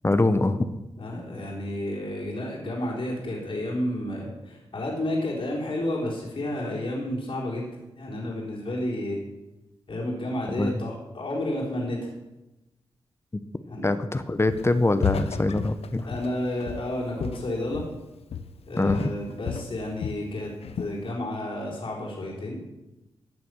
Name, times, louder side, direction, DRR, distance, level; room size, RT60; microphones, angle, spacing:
voice 1, 0.0-0.6 10.6-10.8 13.8-16.1 18.8-19.1, left 2 dB, 25° left, 11 dB, 0.8 m, -23 dB
voice 2, 1.0-7.7 8.0-9.2 9.9-12.1 13.7-13.9 16.0-17.8 18.7-20.5 20.8-22.6, left 1 dB, 60° left, -4 dB, 4.0 m, -31 dB
Walk footsteps, 14.5-14.8 15.0-18.1 18.3-18.6 18.9-20.3 20.6-21.0, left 7 dB, 80° left, 0.7 m, -33 dB
14.5 x 6.5 x 6.2 m, 1.0 s
cardioid pair, 50°, 10 cm